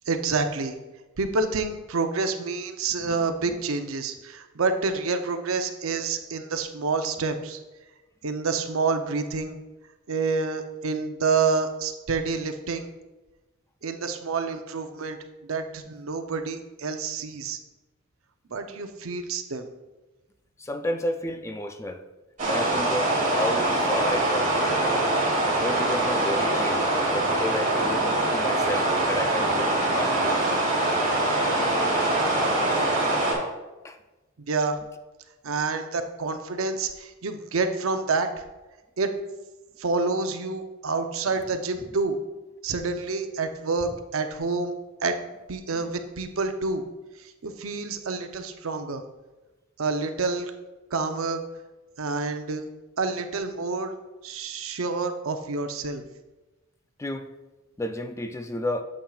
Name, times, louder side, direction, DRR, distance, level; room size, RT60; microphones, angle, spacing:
voice 1, 0.1-0.8 1.2-7.6 8.2-9.6 10.1-12.8 13.8-15.2 15.5-17.6 18.5-19.7 34.5-34.8 35.4-38.4 39.0-39.1 39.8-42.2 42.6-44.7 45.0-45.2 45.5-46.8 47.2-49.0 49.8-50.5 50.9-51.4 52.0-52.7 53.0-53.9 54.2-56.0, right 4 dB, 75° right, 7 dB, 0.6 m, -28 dB
voice 2, 20.6-22.0 22.4-24.6 25.6-30.4 33.8-34.0 57.0-57.3 57.8-58.8, left 1 dB, 15° left, 7 dB, 0.4 m, -32 dB
sound 1, 22.4-33.3, right 2 dB, 40° right, 2.3 m, -23 dB
8.8 x 7.3 x 2.3 m, 1.1 s
head